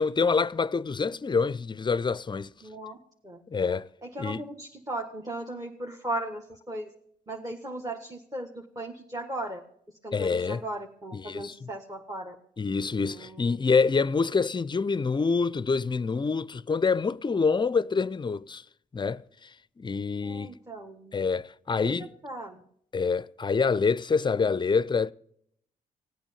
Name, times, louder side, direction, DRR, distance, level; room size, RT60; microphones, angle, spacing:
voice 1, 0.0-2.5 3.5-3.9 4.2-4.5 10.1-10.6 11.1-11.7 12.6-18.6 18.9-19.2 19.8-20.5 21.1-22.1 22.9-25.1, left 5 dB, 30° left, 0.5 m, -26 dB
voice 2, 2.6-3.0 3.2-3.4 4.0-6.9 7.3-9.6 10.0-12.4 13.1-13.6 20.2-21.2 21.8-22.6, right 1 dB, 20° right, 1.6 m, -37 dB
17.0 x 8.8 x 7.0 m
supercardioid pair, 50°, 17 cm